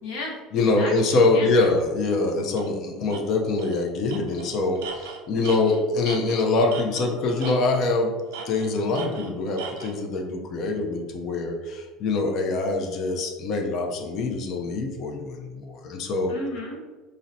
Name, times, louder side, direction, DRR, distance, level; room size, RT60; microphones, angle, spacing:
voice 1, 0.0-1.7 16.3-16.8, left 2 dB, 75° left, -1 dB, 0.8 m, -35 dB
voice 2, 0.5-8.1 8.5-16.3, left 3 dB, 55° left, 2 dB, 0.5 m, -24 dB
Tools, 2.6-2.7 3.1-3.2 3.6-3.8 4.1-7.1 7.4-7.9 8.3-10.0, right 6 dB, 85° right, 0.4 m, -39 dB
3.9 x 2.1 x 2.6 m, 1.3 s
supercardioid pair, 95°, 0 cm